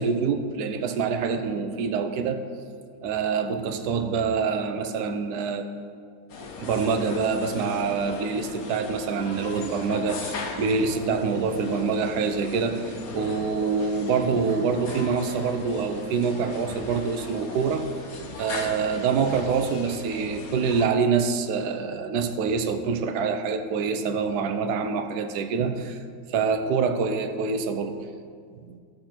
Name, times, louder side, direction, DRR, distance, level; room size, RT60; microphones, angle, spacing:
voice 1, 0.0-2.4 3.0-5.7 6.6-17.9 18.2-26.0 26.3-28.0 28.6-28.8, right 5 dB, 65° right, 7 dB, 1.1 m, -26 dB
sound 1, 6.3-20.9, left 4 dB, 55° left, 1.2 m, -38 dB
14.5 x 6.5 x 4.4 m, 2.2 s
omnidirectional pair, 2.1 m